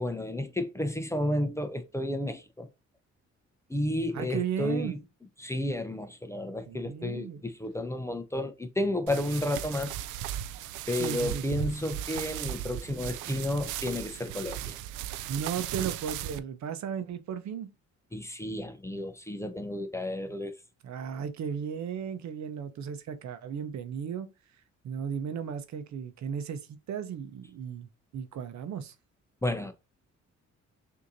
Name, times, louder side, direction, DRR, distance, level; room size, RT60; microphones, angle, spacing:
voice 1, 0.0-2.7 3.7-5.0 5.4-9.9 10.9-14.8 18.1-20.5 29.4-29.7, left 1 dB, 10° left, 0.7 m, -32 dB
voice 2, 4.1-4.9 6.7-7.4 11.0-11.4 13.3-13.4 15.3-17.7 20.8-24.3 24.8-28.9, right 7 dB, 65° right, 0.8 m, -35 dB
sound 1, 9.1-16.4, right 12 dB, 90° right, 0.4 m, -37 dB
6.3 x 2.8 x 2.6 m
cardioid pair, 90°, 30 cm